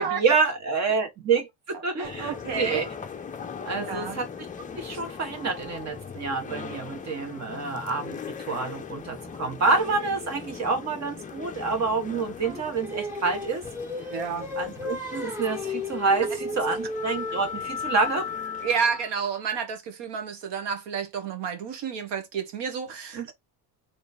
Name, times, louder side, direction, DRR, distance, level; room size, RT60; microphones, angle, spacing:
voice 1, 0.0-2.9 3.7-4.3 4.8-13.6 14.6-18.5 23.1-23.3, right 4 dB, 35° right, 1.4 m, -27 dB
sound 1, 2.0-19.2, left 6 dB, 20° left, 0.5 m, -38 dB
voice 2, 2.0-2.9 3.7-4.2 14.1-14.5 18.6-23.3, right 6 dB, 65° right, 1.4 m, -30 dB
Singing, 12.4-17.6, left 2 dB, 5° right, 1.0 m, -34 dB
3.3 x 3.1 x 4.0 m
cardioid pair, 145°, 46 cm